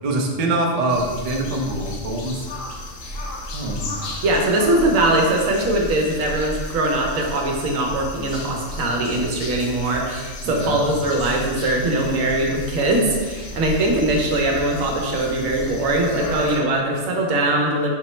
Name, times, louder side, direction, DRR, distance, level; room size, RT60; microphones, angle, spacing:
voice 1, 0.0-2.5 3.5-3.8 10.4-10.8, right 2 dB, 70° right, 0 dB, 0.3 m, -24 dB
sound 1, 0.9-16.6, left 1 dB, 80° left, 1.0 m, -34 dB
voice 2, 4.2-17.9, right 1 dB, 85° right, 0 dB, 1.1 m, -21 dB
4.4 x 2.0 x 4.2 m, 1.5 s
omnidirectional pair, 1.4 m